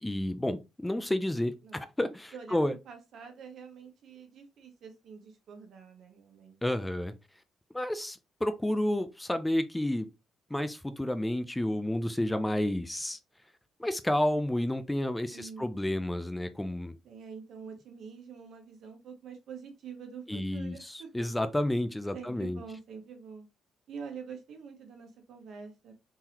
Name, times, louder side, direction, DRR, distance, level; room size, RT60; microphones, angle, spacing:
voice 1, 0.0-2.7 6.6-7.1 7.7-10.1 10.5-13.2 13.8-16.9 20.3-20.8 21.1-22.6, left 1 dB, 10° left, 0.4 m, -30 dB
voice 2, 2.3-6.6 15.3-15.8 17.0-21.1 22.1-23.5 23.9-25.9, right 6 dB, 70° right, 1.2 m, -46 dB
3.8 x 2.8 x 2.8 m
cardioid pair, 90°, 0 cm